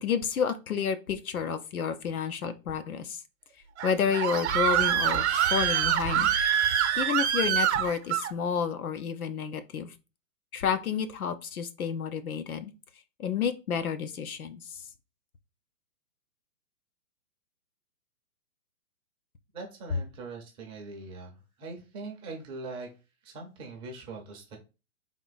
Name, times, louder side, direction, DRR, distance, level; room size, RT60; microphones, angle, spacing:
voice 1, 0.0-3.2 3.8-6.3 7.0-9.9 10.5-12.7 13.2-14.8, left 7 dB, 85° left, 0.8 m, -30 dB
Screaming, 3.8-8.3, right 9 dB, 50° right, 0.8 m, -25 dB
voice 2, 19.5-22.9 23.2-24.6, right 3 dB, 15° right, 0.6 m, -42 dB
3.6 x 2.5 x 4.0 m
hypercardioid pair, 140°, 42 cm